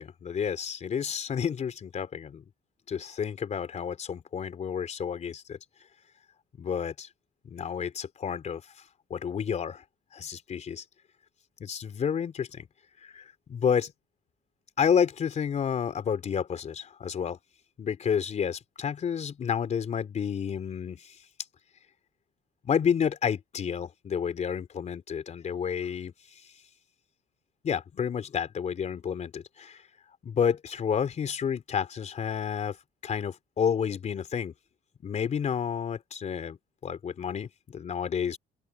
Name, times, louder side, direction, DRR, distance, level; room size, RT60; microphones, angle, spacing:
voice 1, 0.0-2.4 2.9-5.6 6.6-7.1 7.4-8.6 9.1-9.8 10.1-10.8 11.6-12.7 13.0-13.9 14.8-17.4 17.8-21.1 22.6-26.1 27.6-29.8 30.2-32.8 33.0-34.5 35.0-38.4, left 7 dB, 45° left, 3.4 m, -30 dB
open air
cardioid pair, 110°, 17 cm